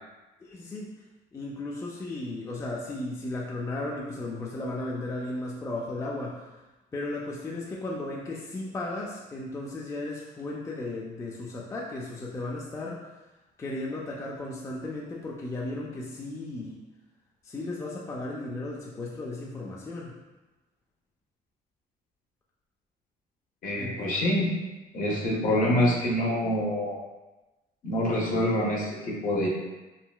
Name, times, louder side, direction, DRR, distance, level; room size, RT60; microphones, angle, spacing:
voice 1, 0.4-0.9 1.3-6.6 6.9-13.1 13.6-16.8 17.4-20.2 23.8-24.1, left 2 dB, 15° left, -3 dB, 0.3 m, -35 dB
voice 2, 23.6-24.5 24.9-27.0 27.8-29.5, left 1 dB, 50° left, -3 dB, 0.8 m, -26 dB
3.8 x 2.1 x 2.3 m, 1.1 s
cardioid pair, 110°, 17 cm